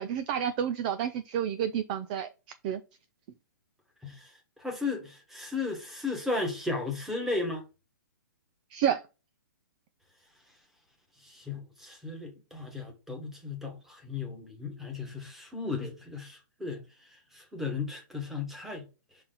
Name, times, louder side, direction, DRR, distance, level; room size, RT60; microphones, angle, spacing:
voice 1, 0.0-2.3 2.6-2.8 8.7-9.0, right 9 dB, 25° right, 0.3 m, -29 dB
voice 2, 4.0-7.6 11.2-16.8 17.3-18.8, left 3 dB, 5° right, 1.3 m, -35 dB
5.8 x 4.2 x 3.9 m
hypercardioid pair, 165°, 11 cm